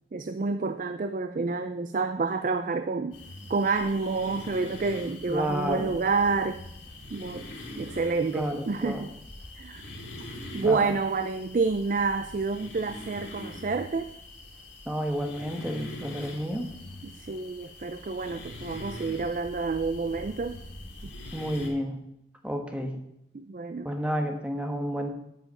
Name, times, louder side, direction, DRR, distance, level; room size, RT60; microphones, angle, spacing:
voice 1, 0.1-3.2 3.5-6.6 7.1-7.5 7.8-9.1 9.6-9.9 10.5-14.1 17.0-20.6 21.0-21.1 23.3-23.9, right 4 dB, 45° right, 9 dB, 0.4 m, -29 dB
sound 1, 3.1-21.7, left 1 dB, 90° left, 3.1 m, -43 dB
voice 2, 5.3-5.9 8.3-9.0 10.6-10.9 14.9-16.7 21.3-22.0 22.4-22.9 23.8-25.1, equal, 5° right, 3 dB, 1.2 m, -30 dB
12.0 x 5.6 x 5.4 m, 0.79 s
head